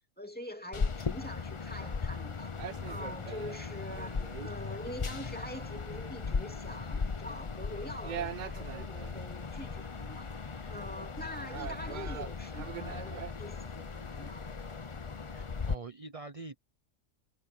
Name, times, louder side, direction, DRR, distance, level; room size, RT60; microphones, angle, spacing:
voice 1, 0.2-10.4 10.7-14.5, equal, 5° left, 2.5 m, -44 dB
sound 1, 0.7-15.8, left 5 dB, 30° left, 0.7 m, -38 dB
sound 2, 2.6-13.9, right 10 dB, 80° right, 0.4 m, -44 dB
sound 3, 9.1-9.7 10.7-11.0 11.3-12.1 12.7-14.9, left 1 dB, 60° left, 5.5 m, -71 dB
voice 2, 15.3-16.5, right 3 dB, 30° right, 0.9 m, -44 dB
omnidirectional pair, 1.4 m